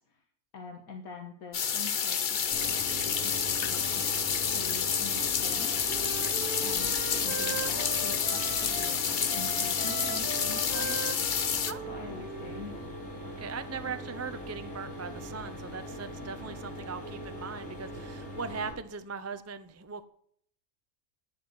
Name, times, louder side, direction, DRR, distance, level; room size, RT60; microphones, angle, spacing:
voice 1, 0.5-4.1 4.5-5.9 6.6-11.1 11.9-12.8, left 4 dB, 80° left, 3 dB, 1.9 m, -45 dB
sound 1, 1.5-11.7, left 7 dB, 45° left, 0.7 m, -29 dB
Mechanisms, 2.5-18.7, equal, 5° left, 7.6 m, -41 dB
Wind instrument woodwind instrument, 5.4-8.9 9.3-13.1, right 7 dB, 45° right, 1.0 m, -40 dB
voice 2, 11.7-12.1 13.2-20.0, right 5 dB, 20° right, 11 dB, 0.4 m, -40 dB
12.0 x 9.5 x 8.1 m, 0.65 s
omnidirectional pair, 1.5 m